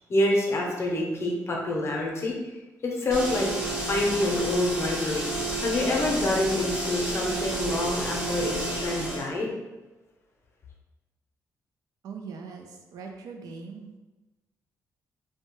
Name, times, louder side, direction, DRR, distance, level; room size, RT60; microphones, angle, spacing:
voice 1, 0.1-2.3 2.8-3.5 3.9-5.3 5.6-9.5, left 1 dB, 45° left, -1 dB, 0.6 m, -27 dB
sound 1, 3.1-9.3, right 1 dB, 15° right, 0.6 m, -30 dB
voice 2, 12.0-13.9, right 5 dB, 85° right, 3 dB, 0.4 m, -41 dB
2.7 x 2.2 x 3.0 m, 1.1 s
cardioid pair, 105°, 6 cm